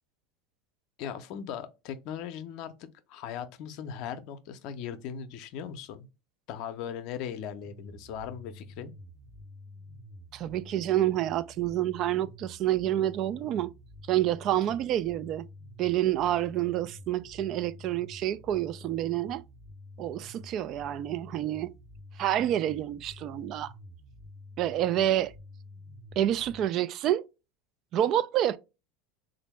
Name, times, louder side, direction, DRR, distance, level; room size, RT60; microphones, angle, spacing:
voice 1, 1.0-6.1 6.5-8.9, left 8 dB, 60° left, 0.5 m, -39 dB
sound 1, 7.6-26.7, left 1 dB, 10° right, 0.7 m, -49 dB
voice 2, 10.3-13.7 14.1-15.5 15.8-19.4 20.0-21.7 22.2-23.7 24.6-25.3 26.2-27.2 27.9-28.6, right 12 dB, 50° right, 0.3 m, -28 dB
3.3 x 2.5 x 3.1 m
hypercardioid pair, 85°, 0 cm